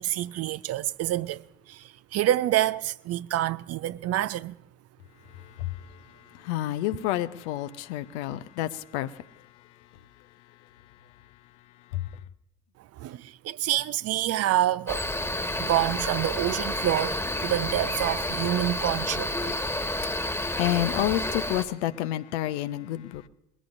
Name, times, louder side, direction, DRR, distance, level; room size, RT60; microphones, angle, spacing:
voice 1, 0.0-1.4 1.7-4.6 13.0-15.1 15.6-19.6, right 13 dB, 45° right, 0.5 m, -27 dB
voice 2, 5.3-9.4 11.9-12.1 19.6-23.3, left 13 dB, 70° left, 0.8 m, -30 dB
Cricket, 14.9-21.6, left 1 dB, 5° left, 1.6 m, -30 dB
21.5 x 16.0 x 2.6 m
figure-of-eight pair, 55°, 35 cm